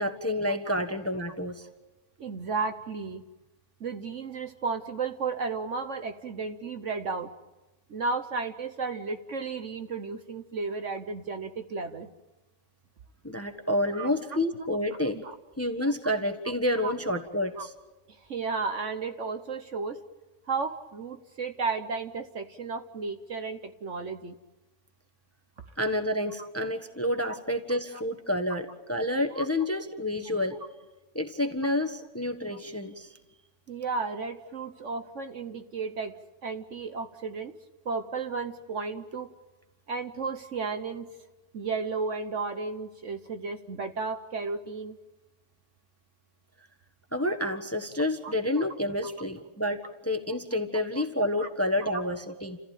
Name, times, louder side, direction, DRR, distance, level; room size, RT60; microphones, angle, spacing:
voice 1, 0.0-1.7 13.2-15.2 15.6-17.7 25.8-30.6 31.1-33.2 47.1-52.6, left 1 dB, 10° left, 7 dB, 1.1 m, -29 dB
voice 2, 2.2-3.2 3.8-7.3 7.9-12.1 13.9-14.1 15.1-15.3 16.8-16.9 17.6-17.7 18.3-20.0 20.5-24.4 29.4-29.5 33.7-36.1 36.4-37.5 37.8-39.3 39.9-41.1 41.5-45.0 48.2-48.3 50.3-50.4 51.4-51.5, right 4 dB, 50° right, 8 dB, 1.2 m, -33 dB
30.0 x 15.0 x 9.1 m, 1.1 s
omnidirectional pair, 1.7 m